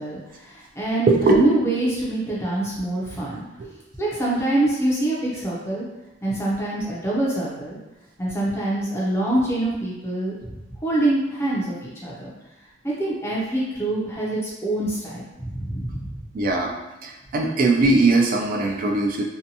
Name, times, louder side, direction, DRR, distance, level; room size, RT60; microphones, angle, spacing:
voice 1, 0.0-3.4 4.0-5.8 6.2-7.8 8.2-10.5 10.8-12.3 12.8-16.2, right 1 dB, 15° left, -6 dB, 0.5 m, -25 dB
voice 2, 1.1-1.4 3.6-3.7 16.3-16.7 17.0-19.2, right 3 dB, 45° right, 1 dB, 0.3 m, -20 dB
2.7 x 2.2 x 2.6 m, 0.99 s
head